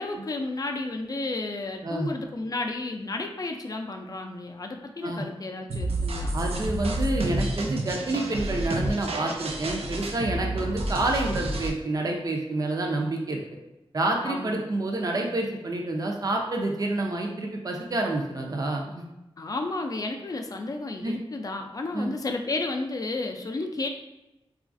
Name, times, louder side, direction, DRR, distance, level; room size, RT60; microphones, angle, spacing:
voice 1, 0.0-6.4 14.2-14.6 19.4-23.9, left 2 dB, 40° left, 4 dB, 0.4 m, -32 dB
sound 1, 5.7-11.7, right 1 dB, 90° right, 0.5 m, -29 dB
voice 2, 6.3-13.4 13.9-19.0 21.0-21.2 21.9-22.1, right 2 dB, 40° right, 1 dB, 0.5 m, -28 dB
3.9 x 2.4 x 2.5 m, 0.95 s
wide cardioid pair, 110°, 10 cm